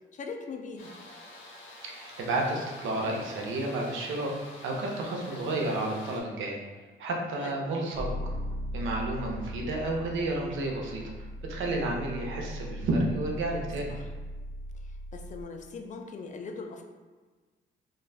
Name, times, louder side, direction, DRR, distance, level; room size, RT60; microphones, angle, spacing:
voice 1, 0.1-1.0 5.3-5.5 7.4-7.6 13.9-14.1 14.8-16.8, left 4 dB, 40° left, 3 dB, 0.4 m, -41 dB
sound 1, 0.8-6.2, left 1 dB, 75° left, 0.6 m, -48 dB
voice 2, 1.8-4.3 4.6-6.6 7.0-8.3 8.7-13.9, right 2 dB, 80° right, -1 dB, 0.6 m, -31 dB
sound 2, 7.9-15.4, equal, 15° right, 1.1 m, -38 dB
2.5 x 2.3 x 3.3 m, 1.3 s
cardioid pair, 90°, 20 cm